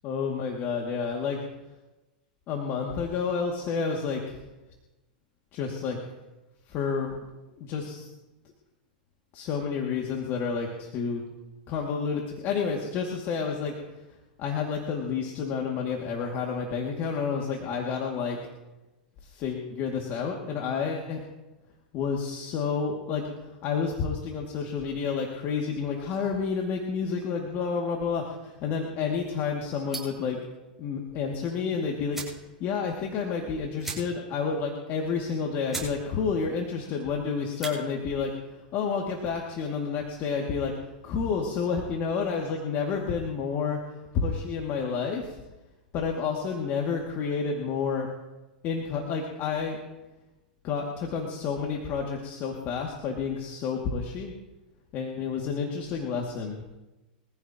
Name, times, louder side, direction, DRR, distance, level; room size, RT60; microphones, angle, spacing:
voice 1, 0.0-1.4 2.5-4.4 5.5-6.0 6.7-7.2 7.5-8.1 9.3-11.2 11.7-14.0 14.4-18.4 19.2-21.2 21.9-30.4 30.8-43.8 44.1-45.4 45.9-48.1 48.6-49.8 50.6-54.3 54.9-56.6, left 5 dB, 45° left, 0 dB, 2.4 m, -30 dB
sound 1, 29.9-30.3 31.6-31.7 32.1-32.4 32.8-32.9 33.1-33.3 33.8-34.4 34.7-34.8 35.3-35.4 35.7-36.0 36.3-36.7 37.4-37.8, right 3 dB, 5° right, 7.3 m, -37 dB
24.5 x 15.0 x 3.0 m, 1.1 s
hypercardioid pair, 115°, 5 cm